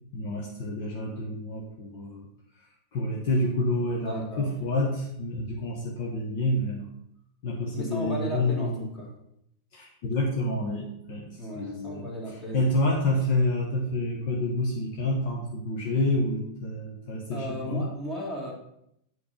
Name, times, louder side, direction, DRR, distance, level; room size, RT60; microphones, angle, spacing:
voice 1, 0.1-2.3 2.9-6.9 7.4-8.9 9.7-17.9, left 1 dB, 45° left, -1 dB, 1.0 m, -28 dB
voice 2, 4.0-4.7 7.7-9.1 11.4-12.7 17.3-18.5, equal, 20° left, -2 dB, 2.0 m, -36 dB
8.2 x 3.1 x 5.5 m, 0.76 s
figure-of-eight pair, 90°, 0 cm